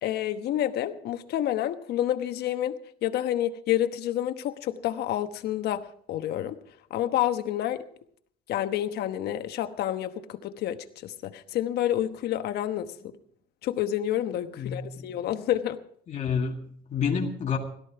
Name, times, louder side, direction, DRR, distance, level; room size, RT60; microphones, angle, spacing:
voice 1, 0.0-6.6 6.9-7.8 8.5-12.9 13.6-15.8, left 12 dB, 75° left, 9 dB, 1.1 m, -29 dB
voice 2, 14.6-15.2 16.1-17.6, left 6 dB, 45° left, 0 dB, 2.0 m, -29 dB
17.0 x 13.0 x 4.8 m, 0.63 s
cardioid pair, 110°, 17 cm